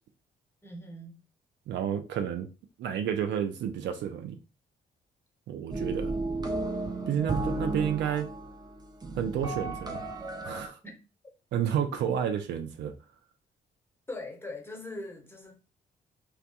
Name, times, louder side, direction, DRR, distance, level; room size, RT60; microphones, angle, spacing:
voice 1, 0.6-1.2 10.8-10.9 14.1-15.5, left 2 dB, 10° left, 0.9 m, -41 dB
voice 2, 1.7-2.5 2.8-4.4 5.5-6.2 7.1-8.3 9.2-10.0 10.4-10.8 11.5-12.9, right 9 dB, 65° right, 0.4 m, -30 dB
sound 1, 5.7-10.7, right 2 dB, 20° right, 0.6 m, -34 dB
2.2 x 2.2 x 2.7 m
supercardioid pair, 55°, 19 cm